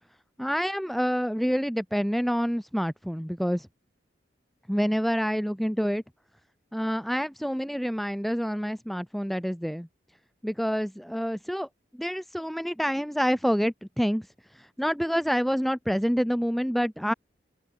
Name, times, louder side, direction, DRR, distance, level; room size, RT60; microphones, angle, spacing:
voice 1, 0.4-3.7 4.7-6.0 6.7-9.9 10.4-11.7 11.9-14.2 14.5-17.1, equal, ahead, 4.6 m, -27 dB
open air
head